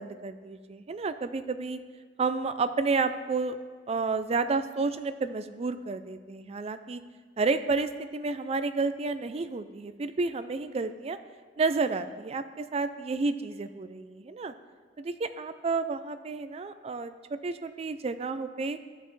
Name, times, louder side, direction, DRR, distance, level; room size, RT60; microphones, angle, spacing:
voice 1, 0.0-1.8 2.2-3.6 3.9-7.0 7.4-11.2 11.6-14.5 15.0-18.8, right 4 dB, 35° right, 11 dB, 0.4 m, -31 dB
13.5 x 5.5 x 3.2 m, 1.5 s
head